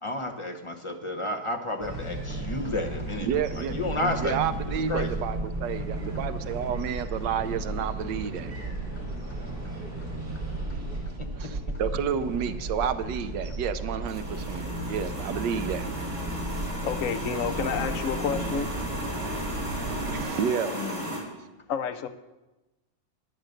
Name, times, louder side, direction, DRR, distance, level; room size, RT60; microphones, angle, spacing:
voice 1, 0.0-3.3 3.5-4.4 4.9-5.1 11.2-11.5 20.7-21.2, left 2 dB, 35° left, 3 dB, 0.5 m, -32 dB
sound 1, 1.8-20.2, right 2 dB, 30° right, 3.1 m, -34 dB
voice 2, 3.3-8.6 10.7-10.9 11.3-15.9 20.0-20.7, right 8 dB, 75° right, 11 dB, 1.3 m, -31 dB
sound 2, 14.0-21.2, equal, 10° right, 4.0 m, -35 dB
voice 3, 16.8-18.7 21.7-22.1, left 7 dB, 60° left, 9 dB, 0.9 m, -29 dB
10.5 x 9.9 x 6.5 m, 1.1 s
omnidirectional pair, 2.0 m